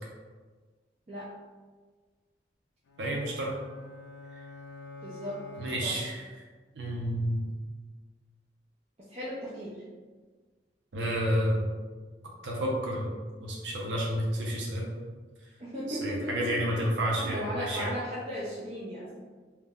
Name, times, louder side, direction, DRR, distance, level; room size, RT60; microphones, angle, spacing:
sound 1, 2.9-6.4, left 3 dB, 80° left, 0.3 m, -47 dB
voice 1, 3.0-3.6 5.6-6.2 6.8-7.4 10.9-11.7 12.4-13.1 13.4-14.9 15.9-17.9, equal, 85° right, -3 dB, 0.5 m, -30 dB
voice 2, 5.0-6.0 9.1-9.7 15.6-16.8 17.2-19.1, equal, 35° right, -8 dB, 0.4 m, -36 dB
2.3 x 2.0 x 3.4 m, 1.4 s
head